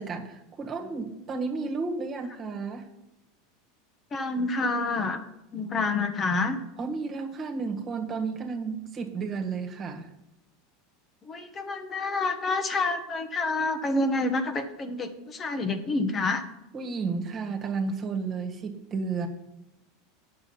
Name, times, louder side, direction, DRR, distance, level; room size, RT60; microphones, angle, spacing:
voice 1, 0.0-2.9 6.8-10.1 16.7-19.3, right 4 dB, 35° right, 4 dB, 1.6 m, -32 dB
voice 2, 4.1-5.2 5.5-6.6 11.2-16.4, left 3 dB, 30° left, 7 dB, 1.1 m, -28 dB
8.9 x 6.6 x 5.8 m, 0.89 s
hypercardioid pair, 90°, 0 cm